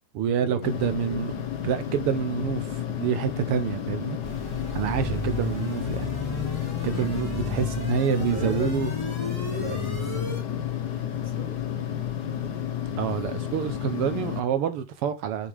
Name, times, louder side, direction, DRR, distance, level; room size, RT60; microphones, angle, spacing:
voice 1, 0.1-1.4 1.6-4.2 4.7-6.1 6.8-8.9 13.0-15.5, right 8 dB, 70° right, 1.4 m, -27 dB
sound 1, 0.6-14.4, left 10 dB, 75° left, 0.9 m, -31 dB
sound 2, 4.2-10.4, left 1 dB, 10° left, 3.7 m, -34 dB
voice 2, 6.9-7.3 8.2-8.7 9.5-10.4 11.1-11.7, equal, 15° right, 3.3 m, -38 dB
7.3 x 7.1 x 3.3 m
omnidirectional pair, 3.3 m